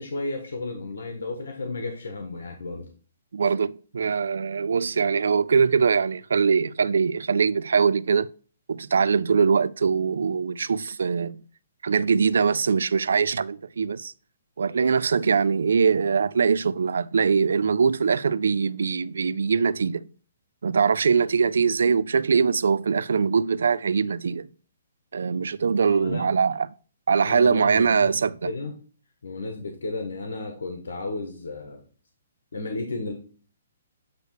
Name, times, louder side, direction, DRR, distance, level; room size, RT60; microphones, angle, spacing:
voice 1, 0.0-2.9 25.9-26.2 27.2-28.1 28.4-28.7 29.2-31.8 32.5-33.1, left 2 dB, 85° left, 1.3 m, -33 dB
voice 2, 3.3-8.3 8.7-11.4 11.8-14.1 14.6-20.0 20.6-24.5 25.1-26.7 27.1-28.5, right 5 dB, 80° right, 0.3 m, -22 dB
8.1 x 3.2 x 4.7 m
hypercardioid pair, 155°, 0 cm